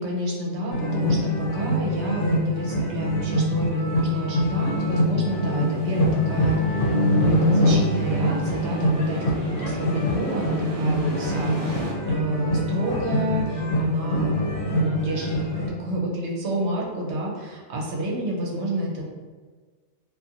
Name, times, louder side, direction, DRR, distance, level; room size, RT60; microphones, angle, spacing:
voice 1, 0.0-19.0, equal, 75° right, -2 dB, 0.9 m, -29 dB
sound 1, 0.7-15.7, equal, 85° left, 0.9 m, -24 dB
sound 2, 3.9-11.9, right 1 dB, 55° right, 0.4 m, -36 dB
2.4 x 2.4 x 2.7 m, 1.4 s
omnidirectional pair, 1.2 m